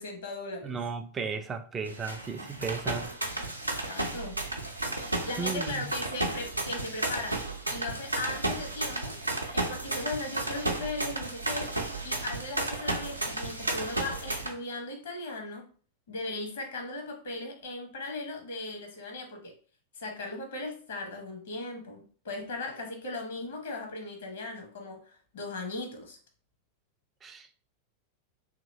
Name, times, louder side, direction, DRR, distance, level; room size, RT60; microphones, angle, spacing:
voice 1, 0.0-0.8 3.8-4.4 5.2-7.4 7.7-9.2 9.5-15.7 16.1-19.5 19.9-26.2, left 2 dB, 60° left, 0.9 m, -38 dB
voice 2, 0.6-3.2 5.4-5.8 27.2-27.5, right 5 dB, 20° right, 0.3 m, -35 dB
sound 1, 1.8-14.5, right 2 dB, 85° right, 0.5 m, -33 dB
2.8 x 2.8 x 2.7 m
figure-of-eight pair, 90°, 0 cm